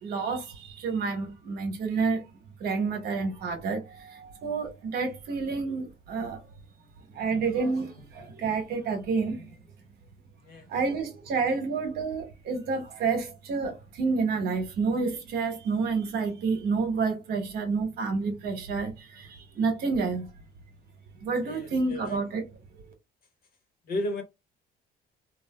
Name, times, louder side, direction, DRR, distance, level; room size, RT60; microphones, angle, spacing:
voice 1, 0.0-2.2 2.6-6.4 7.1-9.5 10.7-20.3 21.2-22.4, right 4 dB, 70° right, 1.1 m, -29 dB
voice 2, 21.4-22.2 23.9-24.2, left 1 dB, 60° left, 1.1 m, -33 dB
3.3 x 2.4 x 2.2 m
cardioid pair, 110°, 17 cm